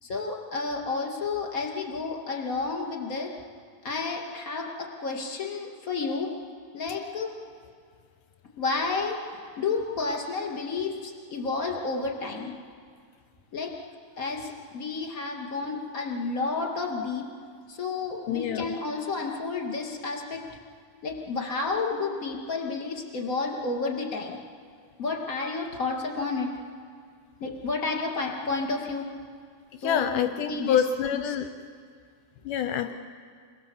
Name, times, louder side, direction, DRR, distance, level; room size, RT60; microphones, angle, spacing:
voice 1, 0.0-3.3 3.8-6.3 6.7-7.3 8.6-9.2 9.6-12.6 13.5-13.7 14.2-17.2 17.7-20.4 21.0-24.4 25.0-26.5 27.4-29.1 29.8-30.8 31.1-31.2, left 4 dB, 25° left, 1 dB, 2.3 m, -31 dB
voice 2, 18.3-18.7 29.8-31.5 32.4-32.9, left 8 dB, 75° left, 8 dB, 2.0 m, -26 dB
28.5 x 22.0 x 7.3 m, 2.1 s
omnidirectional pair, 4.3 m